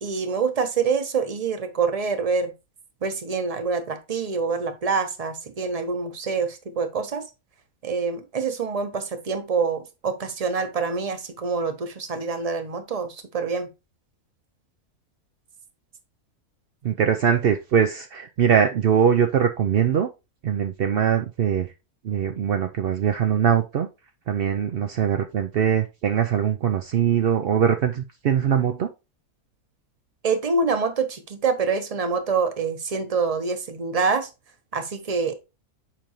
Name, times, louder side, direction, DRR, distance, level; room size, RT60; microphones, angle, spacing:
voice 1, 0.0-2.5 3.0-7.2 7.8-13.7 30.2-34.3 34.7-35.3, right 5 dB, 30° right, 9 dB, 0.8 m, -26 dB
voice 2, 16.8-20.1 20.4-21.7 22.0-23.9 24.3-28.9, right 8 dB, 65° right, 6 dB, 0.5 m, -22 dB
7.6 x 5.1 x 3.0 m, 0.26 s
omnidirectional pair, 1.6 m